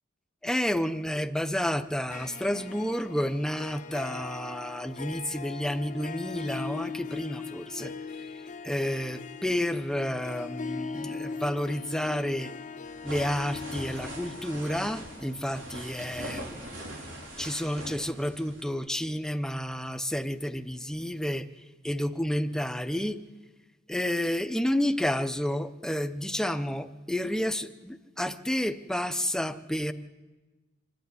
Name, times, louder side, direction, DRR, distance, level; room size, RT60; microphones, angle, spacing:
voice 1, 0.4-7.9 8.6-12.5 13.0-16.7 17.4-21.5 21.8-23.2 23.9-29.9, equal, 5° left, 10 dB, 0.6 m, -30 dB
Harp, 1.9-17.3, left 5 dB, 40° left, 0.6 m, -40 dB
sound 1, 12.8-18.7, right 1 dB, 85° right, 4.7 m, -41 dB
25.5 x 10.5 x 9.6 m, 1.2 s
head